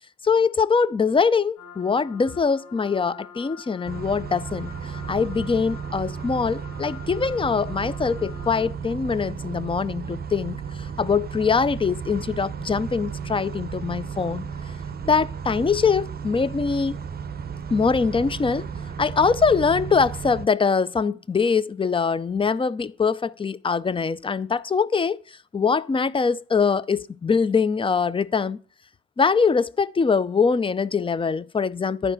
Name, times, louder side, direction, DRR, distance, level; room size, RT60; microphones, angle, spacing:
voice 1, 0.2-14.5 15.0-17.0 17.7-18.7 19.0-25.2 25.5-28.6 29.2-32.1, left 5 dB, 20° left, 0.4 m, -23 dB
sound 1, 1.6-8.7, left 6 dB, 75° left, 1.4 m, -45 dB
sound 2, 3.9-20.5, right 6 dB, 30° right, 0.6 m, -34 dB
11.0 x 4.9 x 6.7 m
cardioid pair, 90°, 30 cm